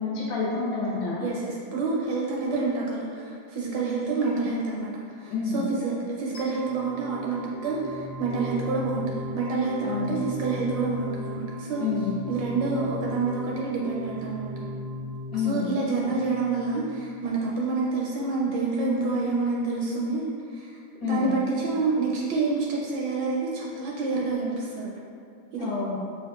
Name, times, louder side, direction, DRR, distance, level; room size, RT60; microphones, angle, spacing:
voice 1, 0.0-1.3 5.3-5.6 9.8-10.1 11.8-12.2 15.3-15.7 21.0-21.3 25.6-26.0, left 5 dB, 75° left, -6 dB, 1.5 m, -28 dB
voice 2, 1.2-11.9 12.3-14.5 15.3-20.7 21.0-24.9 25.5-25.7, right 3 dB, 75° right, -4 dB, 1.1 m, -28 dB
sound 1, 6.3-17.3, left 1 dB, 55° left, 0.6 m, -37 dB
5.7 x 2.4 x 2.3 m, 2.3 s
omnidirectional pair, 2.2 m